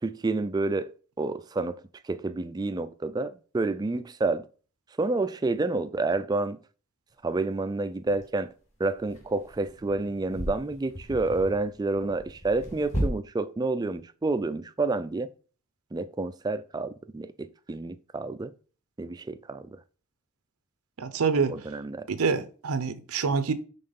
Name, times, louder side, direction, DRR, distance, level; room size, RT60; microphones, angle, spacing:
voice 1, 0.0-4.5 5.0-6.6 7.2-8.5 8.8-15.3 15.9-18.5 19.0-19.8 21.5-22.1, right 3 dB, 20° right, 0.3 m, -29 dB
sound 1, 7.1-7.2 8.1-8.2 9.0-13.1, equal, 30° left, 2.1 m, -35 dB
voice 2, 21.0-21.5 22.1-23.5, right 5 dB, 80° right, 0.6 m, -26 dB
5.6 x 3.8 x 5.2 m
head